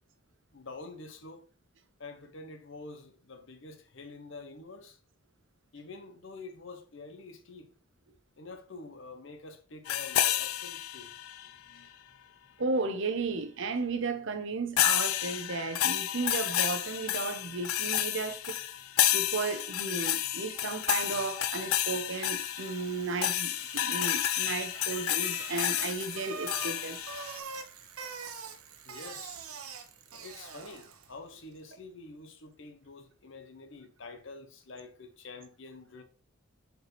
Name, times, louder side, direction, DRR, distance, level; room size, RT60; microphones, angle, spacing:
voice 1, 0.5-1.5 2.0-5.0 5.7-7.7 8.4-11.2 28.8-29.4 30.1-36.0, left 3 dB, 60° left, 0.9 m, -47 dB
sound 1, 9.9-11.5 14.8-27.4, left 12 dB, 75° left, 0.4 m, -30 dB
voice 2, 12.6-18.6 19.1-27.0, right 3 dB, 60° right, 0.7 m, -34 dB
Bicycle, 21.8-31.2, right 5 dB, 90° right, 1.0 m, -45 dB
6.5 x 4.6 x 3.2 m
head